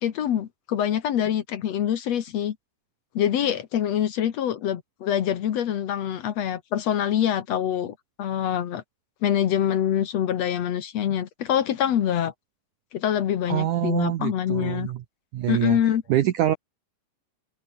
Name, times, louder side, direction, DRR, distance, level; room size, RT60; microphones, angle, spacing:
voice 1, 0.0-2.5 3.1-8.8 9.2-12.3 12.9-14.9 15.5-16.0, left 10 dB, 80° left, 1.5 m, -25 dB
voice 2, 13.5-15.0 15.3-15.8 16.1-16.6, right 12 dB, 90° right, 1.7 m, -25 dB
omnidirectional pair, 5.3 m